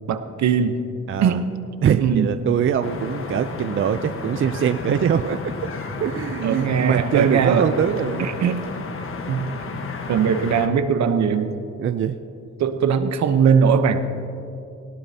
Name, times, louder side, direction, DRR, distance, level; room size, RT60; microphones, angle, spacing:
voice 1, 0.1-0.9 1.2-1.5 2.0-2.3 6.4-7.7 8.2-8.6 9.3-9.5 10.1-11.6 12.6-14.0, right 7 dB, 65° right, 9 dB, 0.9 m, -20 dB
voice 2, 1.1-1.4 1.8-5.5 6.0-8.3 9.6-9.7 11.8-12.2, right 8 dB, 45° right, 9 dB, 0.5 m, -23 dB
sound 1, 2.8-10.7, left 3 dB, 45° left, 1.3 m, -32 dB
19.0 x 17.0 x 2.8 m, 2.6 s
cardioid pair, 90°, 30 cm